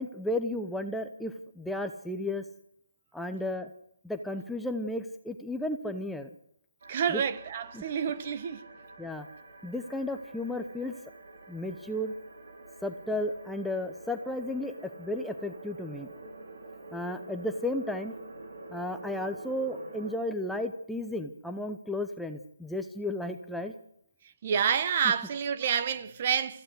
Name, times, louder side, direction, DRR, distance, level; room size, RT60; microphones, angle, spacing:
voice 1, 0.0-2.4 3.1-3.7 4.0-6.3 7.1-7.2 7.7-7.8 9.0-9.3 9.6-10.9 11.5-12.1 12.8-16.1 16.9-18.1 18.7-23.7, left 1 dB, ahead, 0.7 m, -33 dB
sound 1, 6.8-20.2, right 2 dB, 65° right, 4.6 m, -47 dB
voice 2, 6.9-8.6 24.4-26.6, right 7 dB, 35° right, 1.2 m, -28 dB
25.0 x 15.0 x 8.0 m
hypercardioid pair, 165°, 0 cm